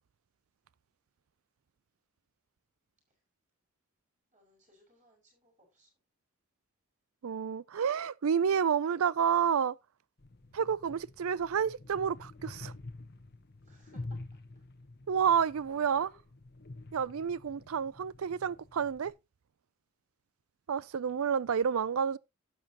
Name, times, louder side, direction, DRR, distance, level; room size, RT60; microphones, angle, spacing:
voice 1, 4.3-5.9 13.6-14.6 15.7-16.2, equal, 35° right, 5.9 m, -63 dB
voice 2, 7.2-9.8 10.5-12.7 15.1-16.1 16.9-19.1 20.7-22.2, right 7 dB, 75° right, 0.4 m, -29 dB
sound 1, 10.2-19.1, left 2 dB, 45° left, 1.0 m, -48 dB
12.0 x 8.0 x 2.9 m
head